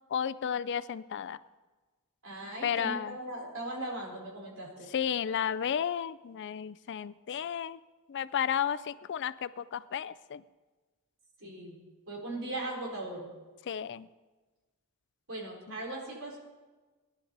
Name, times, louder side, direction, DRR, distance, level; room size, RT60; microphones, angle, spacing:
voice 1, 0.1-1.4 2.6-3.2 4.9-7.8 8.1-10.4 13.7-14.1, left 8 dB, 55° left, 15 dB, 0.4 m, -33 dB
voice 2, 2.2-4.9 11.4-11.8 12.1-13.3 15.3-16.4, right 1 dB, 65° right, -2 dB, 4.3 m, -39 dB
20.0 x 11.5 x 4.0 m, 1.3 s
head